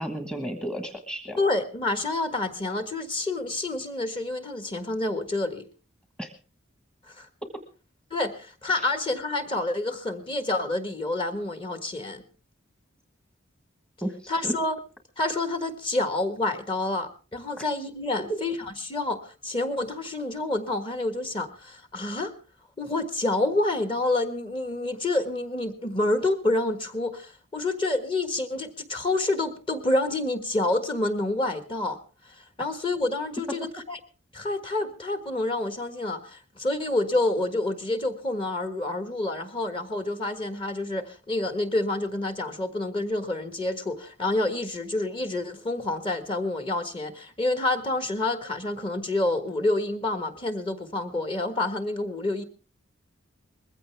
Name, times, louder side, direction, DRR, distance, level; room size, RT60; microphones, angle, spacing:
voice 1, 0.0-1.4 6.2-6.3 8.8-8.9 14.0-14.5, right 1 dB, 5° left, 5 dB, 1.3 m, -33 dB
voice 2, 1.4-5.7 7.1-7.3 8.1-12.2 14.3-14.8 15.2-22.3 22.8-32.0 32.4-34.0 34.3-52.4, left 2 dB, 25° left, 8 dB, 1.6 m, -28 dB
21.0 x 15.5 x 3.4 m, 0.35 s
head